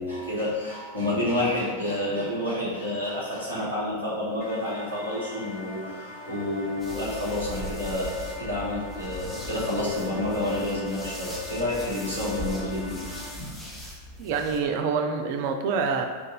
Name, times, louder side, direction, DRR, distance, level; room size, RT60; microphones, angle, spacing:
voice 1, 0.0-13.1 13.4-13.5, left 1 dB, 85° left, -8 dB, 1.4 m, -29 dB
sound 1, 4.4-13.3, left 1 dB, 50° left, 0.8 m, -42 dB
sound 2, 6.8-14.6, left 1 dB, 10° left, 0.9 m, -40 dB
voice 2, 14.2-16.0, right 5 dB, 50° right, 5 dB, 0.3 m, -26 dB
4.3 x 2.5 x 4.1 m, 1.5 s
figure-of-eight pair, 90°, 0 cm